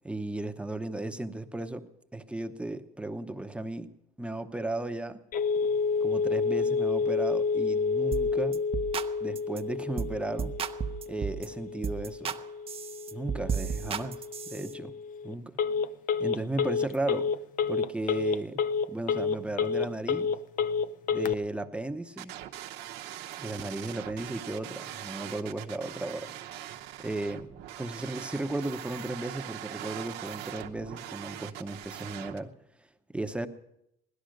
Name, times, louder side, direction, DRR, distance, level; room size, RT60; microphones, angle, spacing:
voice 1, 0.0-3.9 4.2-5.2 6.0-8.6 9.2-10.6 11.1-12.4 13.1-14.2 14.5-14.9 15.2-15.5 16.2-17.3 17.7-18.6 18.9-20.3 21.1-22.3 23.4-26.3 27.0-27.5 27.8-32.5 33.1-33.5, right 2 dB, 5° right, 7 dB, 0.8 m, -35 dB
Telephone, 5.3-21.3, left 5 dB, 55° left, 0.6 m, -30 dB
sound 1, 8.1-8.3 8.5-9.1 9.4-9.6 10.0-10.1 10.4-11.5 11.8-12.4 12.7-14.7, right 7 dB, 35° right, 0.7 m, -33 dB
sound 2, 22.2-32.4, right 12 dB, 90° right, 0.9 m, -42 dB
16.5 x 12.0 x 6.4 m, 0.79 s
cardioid pair, 110°, 17 cm